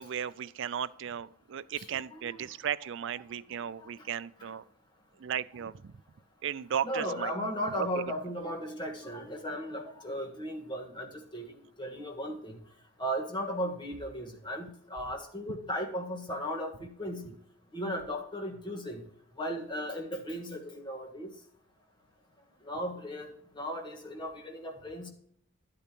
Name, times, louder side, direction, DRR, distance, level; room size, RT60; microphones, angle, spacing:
voice 1, 0.0-4.6 5.2-5.9 6.4-7.3, right 8 dB, 55° right, 16 dB, 0.4 m, -35 dB
voice 2, 1.8-2.4 3.0-3.1 3.8-4.1 4.4-4.5 5.6-5.7 6.8-11.5 11.8-12.6 13.0-17.3 17.7-19.0 19.4-21.3 22.6-25.1, equal, 20° left, 1 dB, 1.5 m, -36 dB
12.0 x 8.6 x 3.0 m, 0.65 s
head